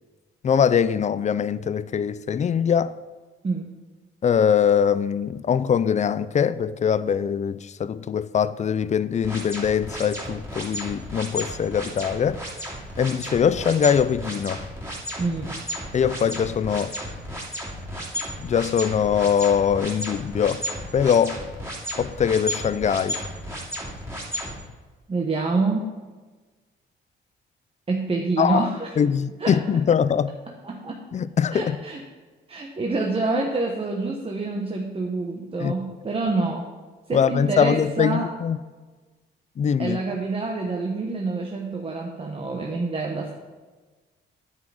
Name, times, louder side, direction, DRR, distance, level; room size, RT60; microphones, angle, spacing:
voice 1, 0.4-2.9 4.2-12.4 13.0-14.6 15.9-16.9 18.4-20.7 20.9-21.4 22.0-23.2 28.4-28.7 29.0-30.3 31.1-31.8 35.6-35.7 37.1-38.6 39.6-40.0, left 7 dB, 35° left, 0.4 m, -22 dB
sound 1, 9.2-24.5, equal, 10° right, 2.8 m, -33 dB
voice 2, 15.2-15.6 25.1-25.9 27.9-28.9 29.4-29.6 30.6-31.0 31.5-32.0 32.5-36.7 37.1-38.3 39.8-43.3, right 3 dB, 30° right, 1.0 m, -27 dB
9.6 x 7.5 x 4.8 m
cardioid pair, 90°, 20 cm